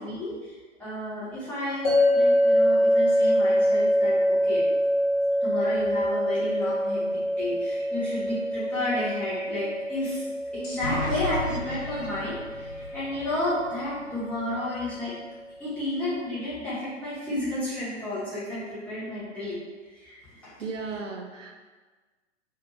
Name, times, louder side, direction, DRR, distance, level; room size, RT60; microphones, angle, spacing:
voice 1, 0.0-4.6 5.4-10.2 10.5-15.2 15.6-19.6 19.9-20.4, left 1 dB, 5° left, -13 dB, 1.0 m, -32 dB
sound 1, 1.8-15.0, equal, 35° left, 0.8 m, -25 dB
sound 2, 10.6-14.3, left 2 dB, 70° left, 1.0 m, -35 dB
voice 2, 20.6-21.6, right 4 dB, 80° right, 3 dB, 0.5 m, -35 dB
2.6 x 2.5 x 2.8 m, 1.4 s
figure-of-eight pair, 110°, 37 cm